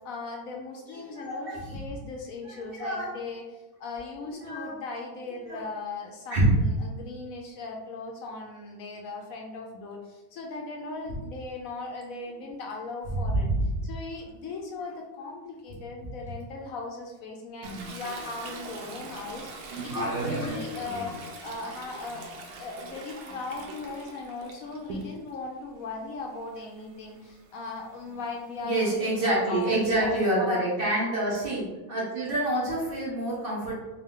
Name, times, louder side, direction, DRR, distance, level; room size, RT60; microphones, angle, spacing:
voice 1, 0.0-13.5 13.8-21.2 21.4-22.2 22.6-30.7, left 3 dB, 70° left, 1 dB, 1.0 m, -38 dB
voice 2, 1.0-1.8 2.5-3.1 4.4-4.8 5.4-5.6 6.3-6.5 13.1-13.6 19.7-20.6 28.6-31.6 31.9-33.8, right 1 dB, 40° right, -6 dB, 1.1 m, -27 dB
Toilet flush, 17.6-25.4 25.8-30.1, right 2 dB, 85° right, 1.2 m, -44 dB
3.5 x 2.7 x 3.6 m, 1.1 s
omnidirectional pair, 1.6 m